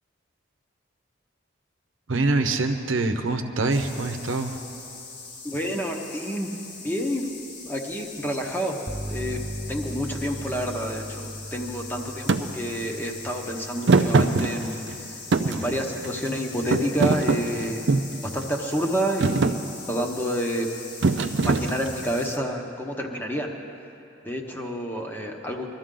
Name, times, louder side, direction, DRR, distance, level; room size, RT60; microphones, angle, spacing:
voice 1, 2.1-4.6, right 3 dB, 80° right, 5 dB, 0.9 m, -24 dB
sound 1, 3.7-22.4, left 4 dB, 60° left, 1.4 m, -41 dB
voice 2, 5.4-6.5 6.8-8.8 9.1-9.4 9.7-17.8 18.2-19.6 19.9-20.7 21.4-23.5 24.2-25.7, equal, 10° left, 1 dB, 1.0 m, -29 dB
sound 2, 8.9-16.6, equal, 10° right, 0.3 m, -39 dB
Thump thud, 12.3-12.4 13.9-14.9 15.3-16.3 16.7-18.2 18.7-18.9 19.2-19.6 21.0-22.1, right 3 dB, 60° right, 0.5 m, -22 dB
21.5 x 13.0 x 3.8 m, 2.8 s
head